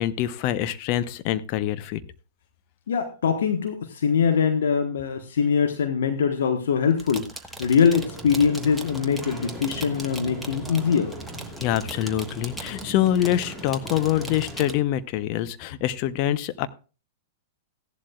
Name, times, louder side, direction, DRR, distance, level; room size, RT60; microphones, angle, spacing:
voice 1, 0.0-2.0 11.6-16.7, left 12 dB, 45° left, 12 dB, 0.9 m, -25 dB
voice 2, 2.9-7.3 7.6-11.1, left 6 dB, 70° left, 6 dB, 1.4 m, -22 dB
sound 1, 6.9-14.7, right 1 dB, 5° right, 1.4 m, -40 dB
sound 2, 7.9-14.7, right 1 dB, 15° left, 4.4 m, -39 dB
16.5 x 11.5 x 2.4 m, 0.35 s
hypercardioid pair, 105°, 0 cm